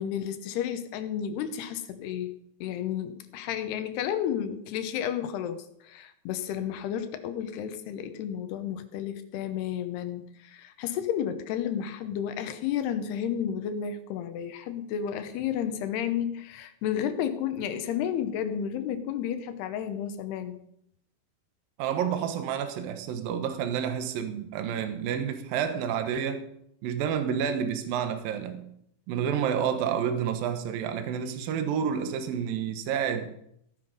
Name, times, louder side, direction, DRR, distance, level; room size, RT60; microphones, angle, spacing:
voice 1, 0.0-2.3 2.6-20.6, left 9 dB, 80° left, 3.1 m, -32 dB
voice 2, 21.8-26.4 26.8-28.6 29.1-33.3, right 8 dB, 65° right, 2.9 m, -29 dB
16.5 x 9.5 x 5.4 m
omnidirectional pair, 4.7 m